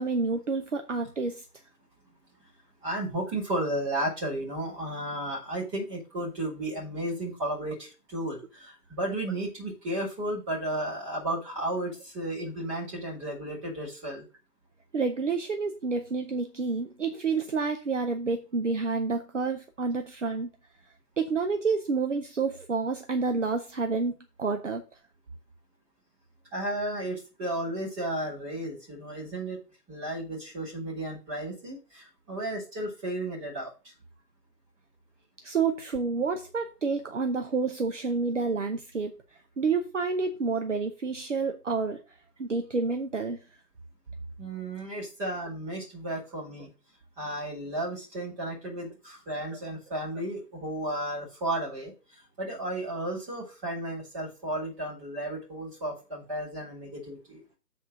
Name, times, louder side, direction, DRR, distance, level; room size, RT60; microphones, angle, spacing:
voice 1, 0.0-1.4 14.9-20.5 21.2-24.8 35.4-39.1 39.6-42.0 42.4-43.4, right 4 dB, 50° right, 5 dB, 0.9 m, -29 dB
voice 2, 2.8-14.2 26.5-29.6 29.9-33.7 44.4-46.7 47.2-51.9 52.4-57.4, right 1 dB, 15° right, -6 dB, 3.5 m, -33 dB
7.6 x 4.4 x 6.3 m, 0.31 s
figure-of-eight pair, 145°, 47 cm